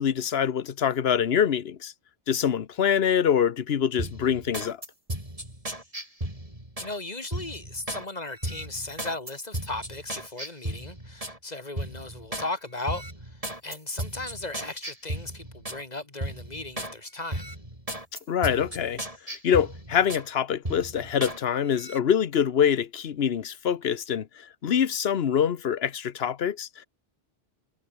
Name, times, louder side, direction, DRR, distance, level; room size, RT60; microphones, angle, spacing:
voice 1, 0.0-1.9 2.3-4.8 18.3-19.0 19.4-26.9, left 8 dB, 75° left, 1.2 m, -25 dB
sound 1, 4.0-6.9 7.3-8.1 8.4-11.4 11.8-12.5 12.8-15.8 16.2-16.9 17.3-20.3 20.6-21.4 21.7-22.0, right 1 dB, 35° right, 6.6 m, -35 dB
voice 2, 6.8-17.5, left 2 dB, 40° left, 2.7 m, -36 dB
omnidirectional pair, 1.0 m